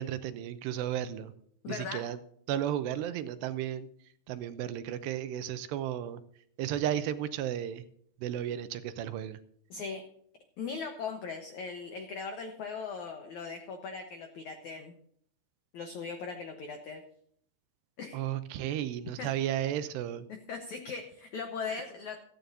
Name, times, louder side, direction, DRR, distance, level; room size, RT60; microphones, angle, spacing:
voice 1, 0.0-1.3 1.7-2.2 2.5-3.9 4.3-6.2 6.6-7.8 8.2-9.4 18.1-20.3 21.7-21.8, right 11 dB, 80° right, 12 dB, 2.7 m, -33 dB
voice 2, 1.6-2.0 9.7-10.0 10.6-14.9 15.7-17.0 18.0-18.3 19.2-19.3 20.5-22.2, left 5 dB, 85° left, 5 dB, 1.6 m, -39 dB
16.0 x 14.0 x 2.7 m, 0.65 s
omnidirectional pair, 5.1 m